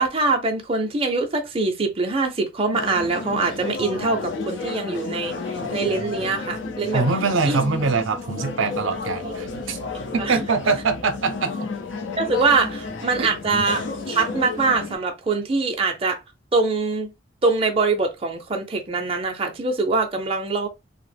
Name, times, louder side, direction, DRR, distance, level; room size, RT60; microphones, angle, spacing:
voice 1, 0.0-5.4 5.7-7.0 7.4-7.6 9.2-9.3 10.2-10.4 12.2-16.2 16.5-17.1 17.4-20.7, right 3 dB, 30° right, 0.5 m, -23 dB
sound 1, 2.7-15.0, left 3 dB, 70° left, 0.5 m, -32 dB
voice 2, 6.9-9.8 10.1-11.5 13.2-13.3, right 4 dB, 75° right, 0.5 m, -23 dB
2.8 x 2.0 x 3.2 m
head